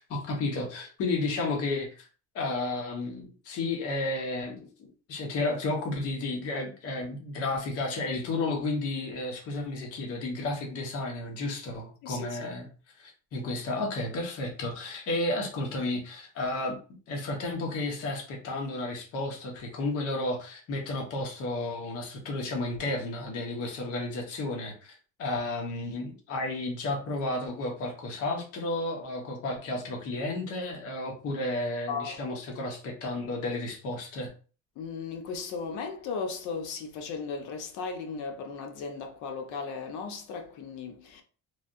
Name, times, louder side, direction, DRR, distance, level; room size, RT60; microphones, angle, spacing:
voice 1, 0.0-2.1 2.3-12.7 13.0-16.8 17.1-34.3, left 2 dB, 50° left, 0.9 m, -32 dB
voice 2, 34.8-41.2, left 5 dB, 75° left, 0.7 m, -36 dB
3.2 x 2.3 x 2.6 m
cardioid pair, 160°, 30 cm